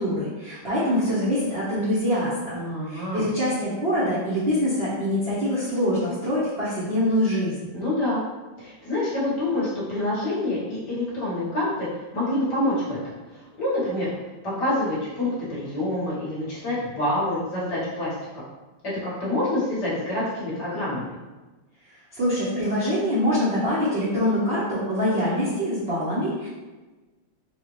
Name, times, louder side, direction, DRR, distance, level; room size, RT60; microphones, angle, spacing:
voice 1, 0.0-2.5 2.9-7.5 22.2-26.5, equal, 40° right, -12 dB, 1.0 m, -24 dB
voice 2, 2.5-3.2 7.7-8.2 8.6-11.9 12.1-13.0 13.6-14.1 14.4-18.4 19.0-21.1, left 1 dB, 55° left, -9 dB, 1.8 m, -27 dB
4.5 x 2.4 x 3.0 m, 1.2 s
omnidirectional pair, 2.2 m